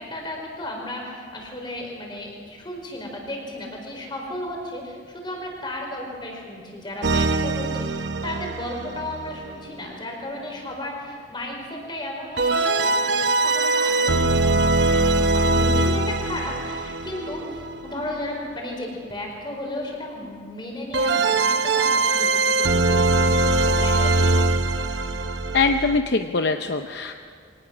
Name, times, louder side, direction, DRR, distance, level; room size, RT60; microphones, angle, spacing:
voice 1, 0.0-24.3, left 1 dB, 25° left, 0 dB, 4.6 m, -34 dB
sound 1, 7.0-9.7 12.4-18.0 20.9-26.0, right 2 dB, 65° right, 0.9 m, -22 dB
voice 2, 25.5-27.1, left 4 dB, 60° left, 6 dB, 0.7 m, -22 dB
24.0 x 18.5 x 6.2 m, 2.1 s
head